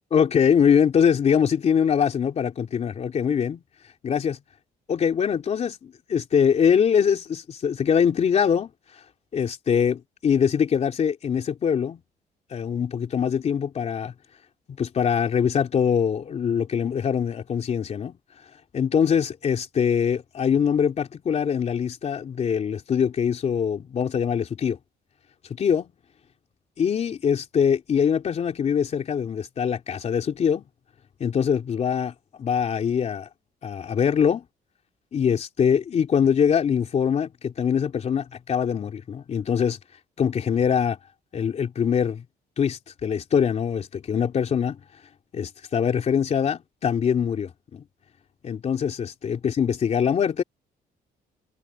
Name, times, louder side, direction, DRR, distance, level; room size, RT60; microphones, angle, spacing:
voice 1, 0.1-3.6 4.0-4.4 4.9-8.7 9.3-12.0 12.5-14.1 14.8-18.2 18.7-24.8 25.5-25.9 26.8-30.6 31.2-32.1 32.4-33.3 33.6-34.4 35.1-39.8 40.2-41.0 41.3-42.2 42.6-44.8 45.3-47.8 48.4-50.4, left 7 dB, 40° left, 3.3 m, -23 dB
cardioid pair, 150°, 17 cm